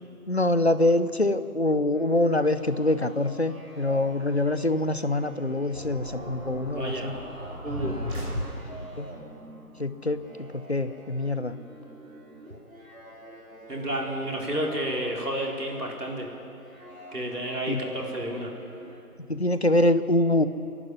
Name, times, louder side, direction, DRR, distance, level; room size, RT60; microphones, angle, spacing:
voice 1, 0.3-7.2 9.0-9.1 9.8-11.6 17.7-17.8 19.3-20.5, left 1 dB, 45° left, 12 dB, 0.8 m, -25 dB
sound 1, 1.9-19.0, right 1 dB, 60° right, 3.3 m, -47 dB
sound 2, 5.7-9.1, equal, 45° right, 4.6 m, -35 dB
voice 2, 6.7-7.1 7.6-8.0 13.7-16.3 17.1-18.5, right 1 dB, 80° right, -1 dB, 4.8 m, -31 dB
24.5 x 11.0 x 9.7 m, 2.6 s
figure-of-eight pair, 170°, 46 cm